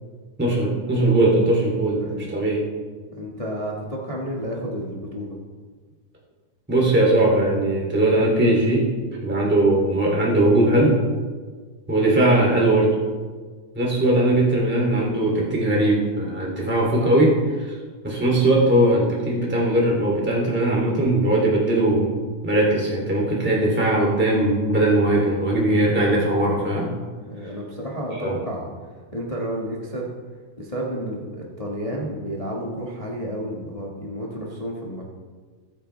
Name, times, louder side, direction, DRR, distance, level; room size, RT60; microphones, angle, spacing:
voice 1, 0.4-2.0 2.3-2.6 6.7-8.9 9.2-11.0 11.9-12.9 13.7-17.3 17.6-17.7 18.0-22.2 22.4-26.9 28.1-28.4, right 1 dB, 5° right, -3 dB, 2.3 m, -19 dB
voice 2, 3.2-5.4 16.5-16.7 27.3-28.7 29.1-30.1 30.6-35.1, equal, 40° left, -3 dB, 0.4 m, -31 dB
22.0 x 8.9 x 3.4 m, 1.5 s
omnidirectional pair, 3.9 m